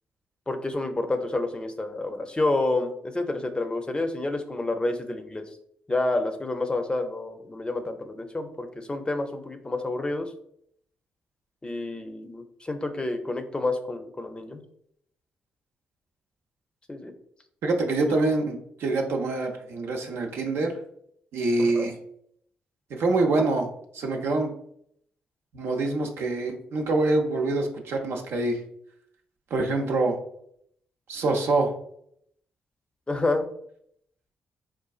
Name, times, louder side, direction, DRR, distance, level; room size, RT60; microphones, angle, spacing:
voice 1, 0.5-5.4 5.9-10.3 11.6-14.6 16.9-17.1 21.6-21.9 33.1-33.5, left 2 dB, 20° left, 7 dB, 0.5 m, -29 dB
voice 2, 17.6-20.7 21.3-22.0 23.0-23.7 23.9-24.5 25.5-28.6 29.5-30.2 31.1-31.7, right 2 dB, 70° right, 2 dB, 0.5 m, -25 dB
3.8 x 2.4 x 2.4 m, 0.70 s
hypercardioid pair, 45°, 4 cm